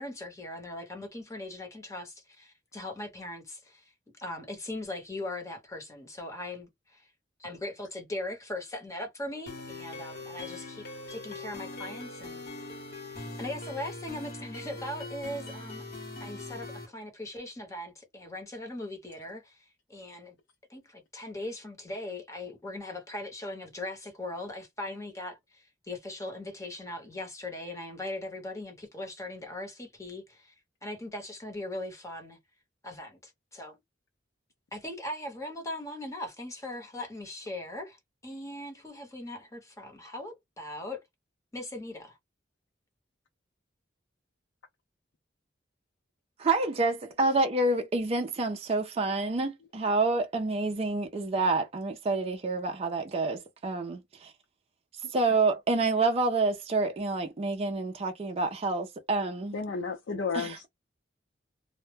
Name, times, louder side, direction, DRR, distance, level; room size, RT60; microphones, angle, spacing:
voice 1, 0.0-3.9 4.2-7.1 7.4-12.6 13.4-15.9 16.2-20.4 20.7-30.5 30.8-32.4 32.8-33.8 34.7-41.0 41.5-42.2, left 1 dB, 15° left, 0.9 m, -40 dB
sound 1, 9.5-16.9, left 2 dB, 55° left, 1.0 m, -41 dB
voice 2, 46.4-54.3 55.1-59.6 60.3-60.6, right 3 dB, 35° right, 0.4 m, -28 dB
voice 3, 59.5-60.7, left 4 dB, 85° left, 0.5 m, -32 dB
2.1 x 2.0 x 3.1 m
head